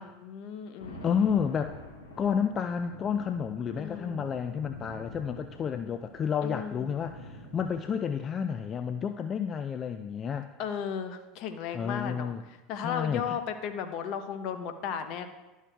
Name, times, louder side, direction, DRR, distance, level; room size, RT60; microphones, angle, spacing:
voice 1, 0.2-1.1 3.8-4.3 6.4-6.9 10.6-12.3 12.7-15.3, left 7 dB, 55° left, 8 dB, 0.7 m, -35 dB
sound 1, 0.8-7.9, left 1 dB, 80° left, 1.2 m, -47 dB
voice 2, 1.0-1.8 2.2-10.5 11.7-12.4 12.8-13.4, left 7 dB, 35° left, 8 dB, 0.3 m, -30 dB
11.5 x 6.4 x 2.3 m, 1.1 s
figure-of-eight pair, 80°, 0 cm